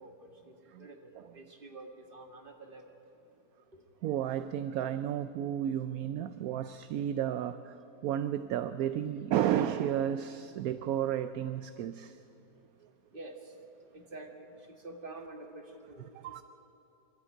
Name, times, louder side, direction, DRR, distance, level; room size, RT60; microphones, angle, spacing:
voice 1, 0.0-2.9 3.7-3.8 13.1-13.6 13.9-16.4, right 2 dB, 30° right, 2 dB, 2.1 m, -48 dB
voice 2, 4.0-7.8 8.0-12.2 16.2-16.4, right 10 dB, 70° right, 11 dB, 1.0 m, -32 dB
24.0 x 12.5 x 9.0 m, 2.9 s
omnidirectional pair, 1.7 m